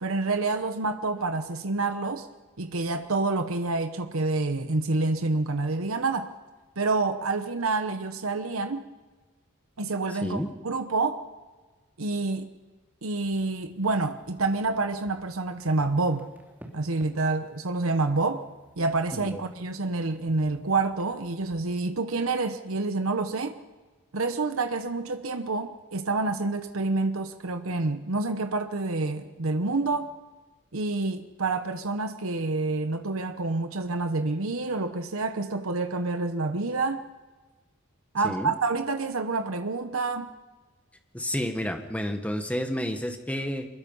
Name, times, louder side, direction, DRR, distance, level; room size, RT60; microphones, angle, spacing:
voice 1, 0.0-2.3 2.6-6.3 6.8-8.8 9.8-11.3 12.0-12.5 13.0-16.3 16.7-18.5 18.8-23.5 24.1-30.1 30.7-37.0 38.1-40.3, right 3 dB, 85° right, 1.1 m, -28 dB
voice 2, 10.1-10.5 19.2-19.4 38.2-38.5 41.1-43.7, equal, 5° left, 1.6 m, -30 dB
sound 1, 13.2-21.6, equal, 10° right, 3.0 m, -55 dB
23.5 x 21.5 x 5.6 m
head